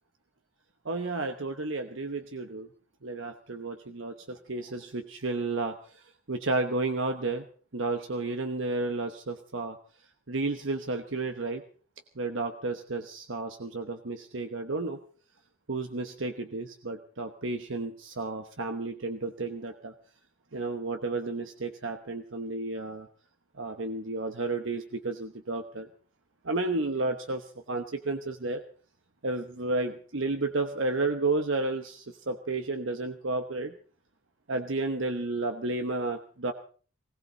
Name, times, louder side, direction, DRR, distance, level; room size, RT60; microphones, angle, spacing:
voice 1, 0.8-2.7 3.0-6.0 6.3-7.4 7.7-9.8 10.3-11.6 12.2-15.0 15.7-19.9 20.5-23.1 23.6-25.9 26.4-28.6 29.2-33.7 34.5-36.5, right 3 dB, 65° right, 6 dB, 1.1 m, -32 dB
19.5 x 17.5 x 4.0 m, 0.41 s
head